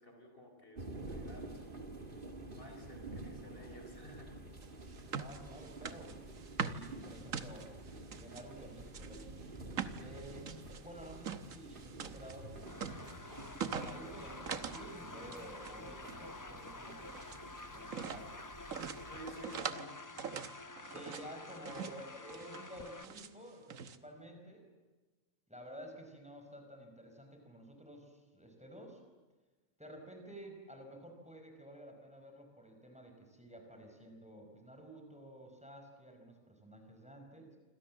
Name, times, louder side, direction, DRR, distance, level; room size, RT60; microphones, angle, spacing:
voice 1, 0.0-1.8 2.5-4.3 18.8-20.0, equal, 40° left, 3 dB, 4.4 m, -52 dB
sound 1, 0.8-19.7, right 2 dB, 40° right, 2.5 m, -50 dB
sound 2, 4.6-8.4 8.9-14.9 15.1-15.7 16.0-17.4 17.9-18.3 18.7-19.9 20.2-21.3 21.7-22.0 22.3-23.3 23.7-24.0, right 7 dB, 70° right, 1.6 m, -43 dB
voice 2, 5.1-6.2 6.6-7.7 8.1-9.6 10.0-13.0 13.6-17.3 17.6-18.3 20.9-24.7 25.5-29.0 29.8-37.6, right 1 dB, 5° right, 3 dB, 5.1 m, -52 dB
sound 3, 12.7-23.0, left 3 dB, 20° left, 0.6 m, -49 dB
27.5 x 26.5 x 7.5 m, 1.2 s
omnidirectional pair, 1.4 m